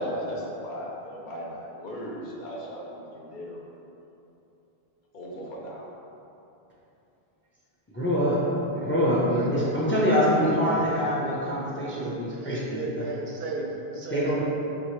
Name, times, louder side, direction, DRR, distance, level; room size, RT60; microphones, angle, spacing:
voice 1, 0.0-3.6 5.1-5.9, equal, 55° left, -4 dB, 0.7 m, -36 dB
voice 2, 7.9-8.4 8.7-13.0 14.1-14.4, equal, 15° left, -6 dB, 0.4 m, -25 dB
voice 3, 9.3-9.9 10.2-11.0 11.9-14.4, right 2 dB, 75° right, -1 dB, 0.8 m, -35 dB
4.4 x 3.1 x 3.1 m, 3.0 s
omnidirectional pair, 1.0 m